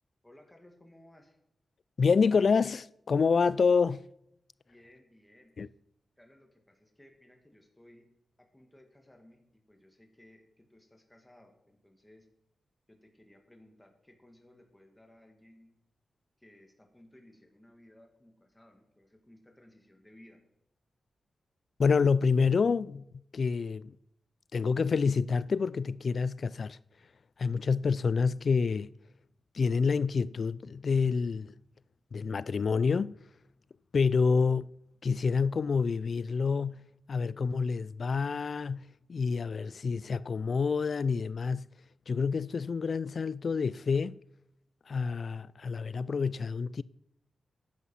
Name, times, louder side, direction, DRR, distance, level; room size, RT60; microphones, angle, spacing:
voice 1, 0.2-1.4 4.6-5.7 6.2-8.1 8.4-9.4 9.7-12.3 12.9-15.8 16.4-20.4, left 1 dB, 10° left, 2.1 m, -59 dB
voice 2, 2.0-4.1 5.6-5.7 21.8-23.0 23.3-23.9 24.5-26.8 27.4-28.9 29.5-31.5 32.1-33.2 33.9-34.7 35.0-41.7 42.1-44.2 44.9-46.8, left 5 dB, 60° left, 0.3 m, -28 dB
10.5 x 8.3 x 5.6 m
cardioid pair, 65°, 0 cm